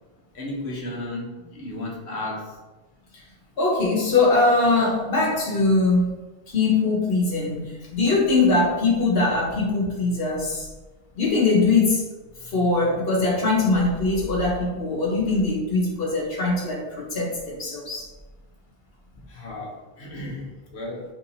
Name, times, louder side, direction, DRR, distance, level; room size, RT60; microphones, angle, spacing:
voice 1, 0.3-2.5 19.3-21.0, left 1 dB, 80° left, -4 dB, 1.4 m, -34 dB
voice 2, 3.6-6.1 6.5-7.7 7.9-10.7 11.2-12.0 12.4-18.1, left 3 dB, 65° left, -2 dB, 1.2 m, -21 dB
5.1 x 2.7 x 3.3 m, 1.2 s
omnidirectional pair, 1.1 m